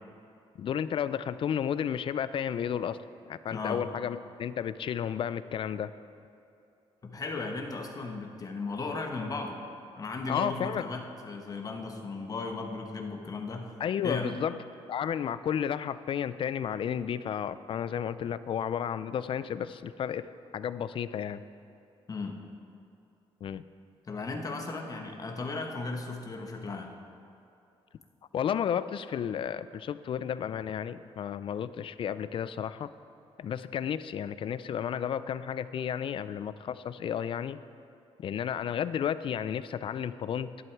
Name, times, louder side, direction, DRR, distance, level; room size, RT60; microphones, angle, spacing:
voice 1, 0.6-3.0 3.3-5.9 10.3-10.9 13.8-14.6 14.9-20.3 20.5-21.4 23.4-23.6 28.3-32.9 33.4-37.6 38.2-40.5, left 8 dB, 55° left, 15 dB, 0.4 m, -32 dB
voice 2, 7.0-9.6 10.0-13.7 14.0-14.4 22.1-22.4 24.1-26.9, left 3 dB, 35° left, 3 dB, 1.2 m, -36 dB
11.0 x 11.0 x 4.7 m, 2.7 s
cardioid pair, 115°, 11 cm